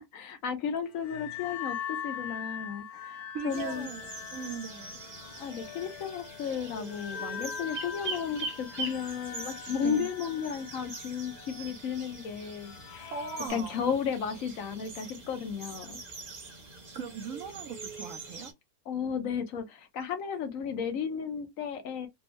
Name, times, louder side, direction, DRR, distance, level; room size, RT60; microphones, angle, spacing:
voice 1, 0.0-3.9 5.4-13.1 13.5-16.0 18.9-22.1, left 7 dB, 60° left, 1.0 m, -34 dB
sound 1, 0.8-13.5, left 8 dB, 90° left, 1.3 m, -42 dB
voice 2, 3.3-5.0 9.8-10.1 13.1-13.8 16.9-18.5, right 6 dB, 65° right, 0.9 m, -39 dB
sound 2, 3.5-18.5, right 3 dB, 40° right, 0.9 m, -43 dB
3.4 x 2.2 x 2.9 m
omnidirectional pair, 1.8 m